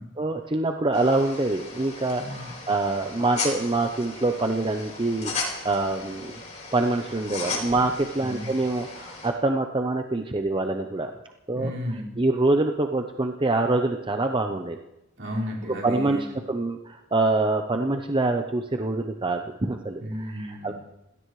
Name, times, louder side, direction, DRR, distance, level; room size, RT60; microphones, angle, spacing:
voice 1, 0.2-6.4 6.7-11.1 11.5-11.7 12.2-14.8 15.7-20.7, right 2 dB, 25° right, 4 dB, 0.7 m, -25 dB
sound 1, 0.9-9.3, left 3 dB, 35° left, 4.8 m, -36 dB
voice 2, 2.2-2.5 8.2-8.5 11.5-12.2 15.2-16.4 20.0-20.7, equal, 65° right, -4 dB, 5.1 m, -33 dB
27.0 x 17.0 x 3.2 m, 0.90 s
head